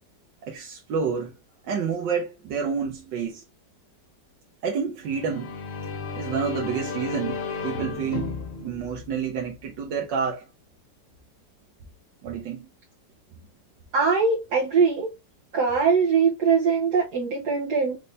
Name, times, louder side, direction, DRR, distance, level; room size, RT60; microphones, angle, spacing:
voice 1, 0.4-1.3 1.7-3.4 4.6-5.6 6.2-10.4 12.2-12.7, right 6 dB, 85° right, 1.5 m, -29 dB
sound 1, 5.1-9.8, left 5 dB, 50° left, 0.9 m, -34 dB
voice 2, 13.9-15.1 15.5-18.0, right 5 dB, 65° right, 1.5 m, -22 dB
5.6 x 2.7 x 3.2 m
omnidirectional pair, 1.9 m